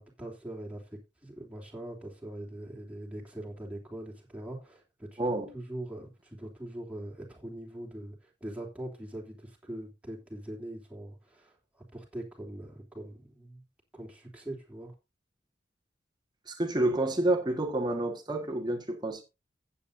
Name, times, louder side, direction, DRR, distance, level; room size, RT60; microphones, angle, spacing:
voice 1, 0.0-5.2 5.5-11.5 11.9-13.6 13.9-14.9, right 1 dB, 5° right, 3.2 m, -42 dB
voice 2, 5.2-5.5 16.5-19.2, right 1 dB, 25° right, 1.6 m, -29 dB
15.5 x 8.4 x 2.7 m
head